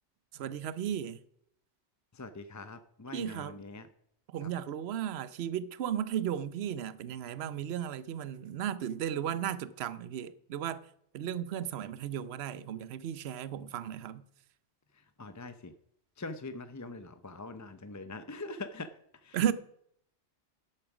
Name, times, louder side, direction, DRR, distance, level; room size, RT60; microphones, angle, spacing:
voice 1, 0.3-1.2 3.1-3.6 4.3-10.8 11.1-14.2 19.3-19.5, right 10 dB, 65° right, 0.9 m, -35 dB
voice 2, 2.1-3.9 4.4-4.5 14.9-15.7 16.2-18.9 19.2-19.4, left 3 dB, 20° left, 0.5 m, -43 dB
11.5 x 8.8 x 6.0 m
omnidirectional pair, 1.2 m